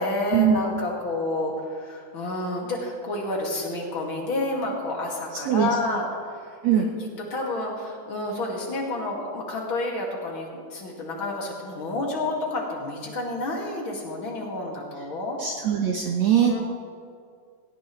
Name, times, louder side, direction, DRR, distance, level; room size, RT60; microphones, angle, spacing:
voice 1, 0.0-6.0 6.4-15.4 16.3-16.6, left 2 dB, 40° left, -2 dB, 2.5 m, -30 dB
voice 2, 15.4-16.6, right 9 dB, 70° right, 1 dB, 1.7 m, -21 dB
19.0 x 17.0 x 3.2 m, 2.2 s
omnidirectional pair, 4.3 m